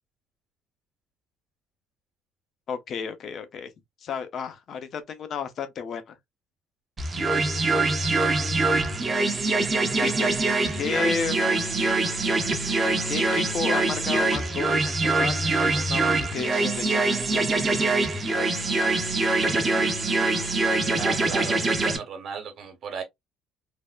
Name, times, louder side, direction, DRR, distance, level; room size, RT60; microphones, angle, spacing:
voice 1, 2.7-3.7 4.0-6.2 9.9-10.3 10.8-11.4 13.0-17.4, left 6 dB, 50° left, 0.6 m, -32 dB
talking chords, 7.0-22.0, right 3 dB, 25° right, 0.7 m, -24 dB
voice 2, 21.0-23.0, right 6 dB, 55° right, 1.0 m, -35 dB
3.4 x 2.0 x 2.3 m
cardioid pair, 115°, 0 cm